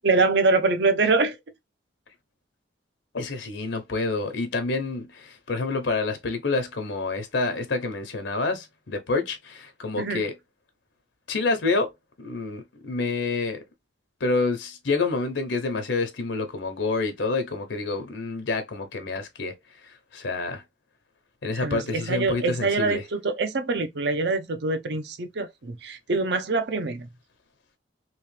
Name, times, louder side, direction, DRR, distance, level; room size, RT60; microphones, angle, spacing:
voice 1, 0.0-1.4 10.0-10.2 21.5-27.1, right 3 dB, 65° right, 0.6 m, -24 dB
voice 2, 3.1-10.3 11.3-11.9 12.2-13.6 14.2-19.5 19.8-20.6 21.4-23.0, left 3 dB, 85° left, 0.8 m, -28 dB
3.1 x 2.9 x 3.2 m
head